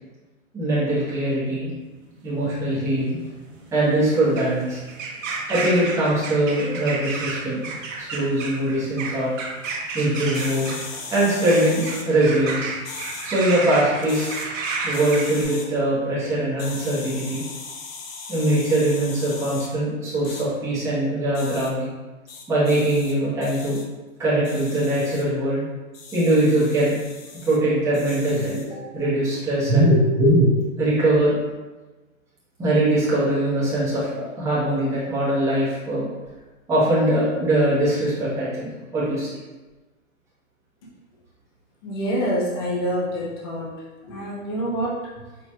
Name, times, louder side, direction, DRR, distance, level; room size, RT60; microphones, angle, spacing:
voice 1, 0.5-1.7 2.2-3.2 3.7-4.8 5.5-7.7 8.0-9.3 9.9-10.7 11.1-12.7 13.2-14.3 14.8-17.4 18.3-21.8 22.5-23.8 24.2-25.6 26.1-27.0 27.4-30.5 30.8-31.4 32.6-36.1 36.7-39.4, right 1 dB, 5° right, -10 dB, 1.1 m, -21 dB
sound 1, 2.0-15.4, right 4 dB, 65° right, 1.1 m, -32 dB
sound 2, 10.3-12.1 12.8-13.3 14.0-14.5 14.9-15.7 16.6-19.7 20.2-20.4 21.3-21.7 22.3-23.1 23.4-23.8 24.4-25.2 25.9-27.6 27.9-28.7, left 4 dB, 70° left, 0.8 m, -38 dB
voice 2, 41.8-43.7 44.0-45.1, equal, 20° left, -5 dB, 0.5 m, -26 dB
4.6 x 3.9 x 2.3 m, 1.2 s
hypercardioid pair, 150°, 42 cm